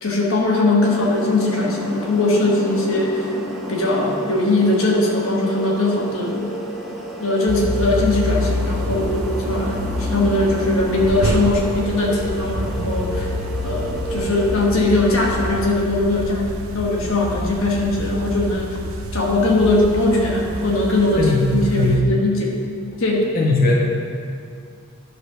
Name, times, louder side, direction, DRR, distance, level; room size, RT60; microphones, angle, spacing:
voice 1, 0.0-3.3 3.7-6.4 7.2-13.3 13.6-18.8 19.1-22.6 23.0-23.3, left 2 dB, 70° left, -1 dB, 1.2 m, -20 dB
sound 1, 0.8-14.7, right 1 dB, ahead, 1.1 m, -31 dB
sound 2, 7.5-22.0, left 1 dB, 80° right, 0.7 m, -27 dB
voice 2, 21.1-21.5 21.7-22.0 23.3-23.7, left 2 dB, 45° left, -2 dB, 1.3 m, -18 dB
10.0 x 5.0 x 6.3 m, 2.3 s
head